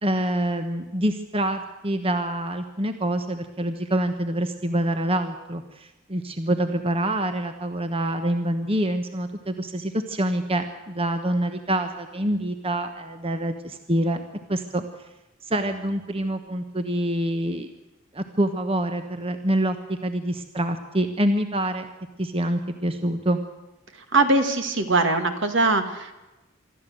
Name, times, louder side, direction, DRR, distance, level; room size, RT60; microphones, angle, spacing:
voice 1, 0.0-14.2 14.5-14.8 15.4-17.7 18.1-21.9 22.2-23.4, right 1 dB, 30° right, 7 dB, 1.2 m, -26 dB
voice 2, 24.1-26.1, right 2 dB, 65° right, 7 dB, 2.3 m, -21 dB
25.0 x 13.0 x 7.9 m, 1.0 s
head